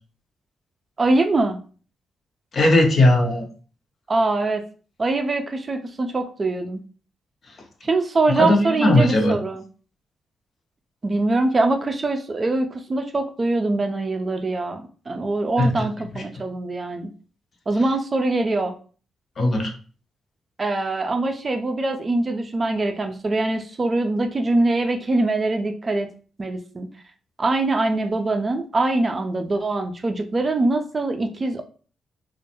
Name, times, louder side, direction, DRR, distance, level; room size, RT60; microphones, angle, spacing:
voice 1, 1.0-1.6 4.1-4.6 5.0-6.8 7.8-9.6 11.0-17.1 17.7-18.7 20.6-26.1 26.4-26.9 27.4-31.6, right 2 dB, 40° right, 5 dB, 0.4 m, -23 dB
voice 2, 2.5-3.4 8.4-9.3 15.6-15.7 16.1-16.2 19.4-19.7, left 1 dB, 55° left, 3 dB, 0.6 m, -18 dB
2.2 x 2.1 x 2.8 m, 0.39 s
hypercardioid pair, 45°, 0 cm